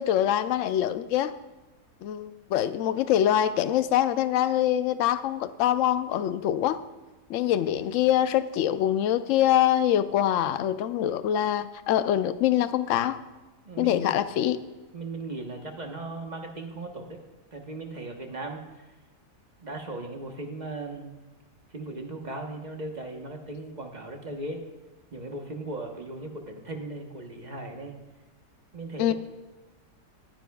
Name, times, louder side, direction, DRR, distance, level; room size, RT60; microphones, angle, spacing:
voice 1, 0.0-1.3 2.0-6.8 7.3-13.2 13.8-14.6 29.0-29.1, left 11 dB, 75° left, 12 dB, 0.7 m, -24 dB
voice 2, 13.6-14.1 14.9-17.2 17.5-18.6 19.6-21.2 21.7-24.6 25.1-28.0 28.7-29.1, right 2 dB, 30° right, 3 dB, 1.0 m, -37 dB
21.0 x 9.8 x 2.3 m, 1.2 s
omnidirectional pair, 1.8 m